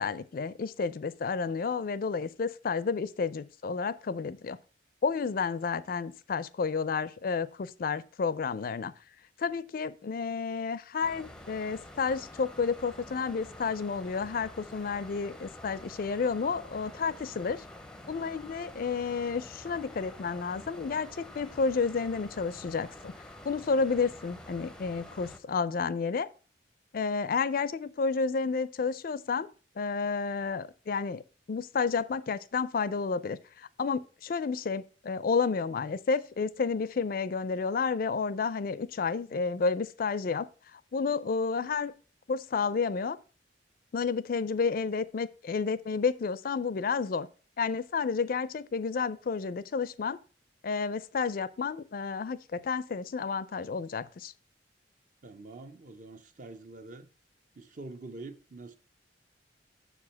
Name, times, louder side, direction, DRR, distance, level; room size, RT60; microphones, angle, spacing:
voice 1, 0.0-4.6 5.0-8.9 9.4-17.6 18.1-23.1 23.4-26.3 26.9-29.5 29.8-31.2 31.5-40.5 40.7-41.9 42.3-43.2 43.9-47.3 47.6-50.2 50.6-54.3, left 5 dB, 50° left, 0.4 m, -31 dB
sound 1, 11.0-25.4, left 1 dB, 5° left, 0.5 m, -48 dB
voice 2, 55.2-57.1 57.6-58.8, right 2 dB, 45° right, 0.6 m, -45 dB
6.8 x 4.9 x 5.7 m
head